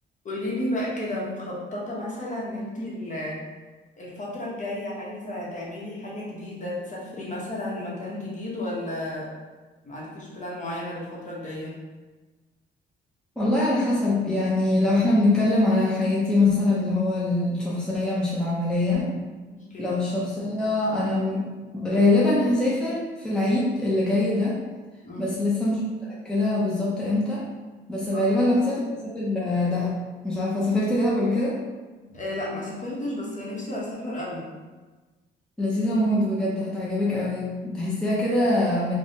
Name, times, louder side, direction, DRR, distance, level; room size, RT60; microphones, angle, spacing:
voice 1, 0.2-3.4 4.0-9.3 9.8-11.8 19.5-19.9 25.0-25.3 28.1-28.3 32.1-34.5, left 1 dB, 40° left, -5 dB, 0.9 m, -33 dB
voice 2, 13.4-19.1 19.8-24.6 25.2-27.4 27.9-31.6 35.6-38.9, left 2 dB, 5° left, -6 dB, 0.6 m, -23 dB
3.1 x 2.2 x 2.7 m, 1.3 s
cardioid pair, 90°, 20 cm